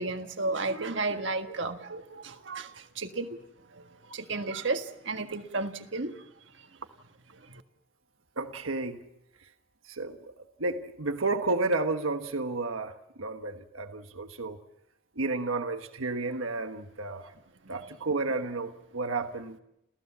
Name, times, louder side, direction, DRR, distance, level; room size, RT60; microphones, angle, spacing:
voice 1, 0.0-3.4 3.7-6.2 7.4-7.6, right 3 dB, 60° right, 1.6 m, -33 dB
voice 2, 8.4-9.1 9.8-10.3 10.6-14.6 15.1-17.3 17.7-19.6, right 3 dB, 85° right, 1.4 m, -32 dB
29.5 x 15.5 x 7.4 m
head